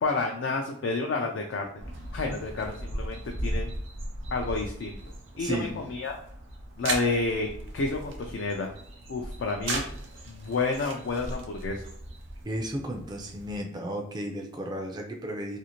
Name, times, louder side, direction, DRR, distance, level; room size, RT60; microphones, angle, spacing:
voice 1, 0.0-1.7 2.1-3.7 4.3-5.0 5.4-6.2 6.8-7.5 7.7-8.7 9.1-9.8 10.3-11.9, left 3 dB, 70° left, 2 dB, 0.4 m, -30 dB
sound 1, 1.8-13.6, right 1 dB, 80° right, 0.6 m, -37 dB
voice 2, 5.4-5.7 12.4-15.6, right 1 dB, 20° right, 2 dB, 0.3 m, -34 dB
2.5 x 2.4 x 2.9 m, 0.67 s
head